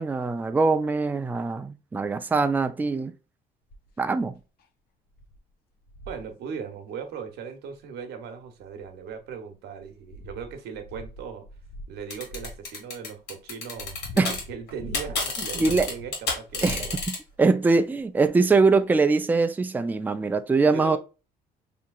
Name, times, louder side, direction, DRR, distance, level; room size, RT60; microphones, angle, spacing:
voice 1, 0.0-3.1 4.0-4.3 14.2-14.3 15.6-15.9 16.6-16.9 17.4-21.0, right 4 dB, 10° right, 0.3 m, -22 dB
sound 1, 3.7-4.0 4.6-4.7 5.2-5.4 5.9-6.3 7.7-7.8 8.6-9.3 9.8-12.7 13.4-16.1 16.5-17.4 18.2-18.3, left 1 dB, 70° left, 0.6 m, -42 dB
voice 2, 6.1-11.5 11.9-17.0 20.7-21.0, right 6 dB, 75° right, 0.9 m, -38 dB
sound 2, 12.1-14.4 14.7-17.2, left 4 dB, 85° left, 1.9 m, -30 dB
4.9 x 2.8 x 2.3 m
cardioid pair, 110°, 17 cm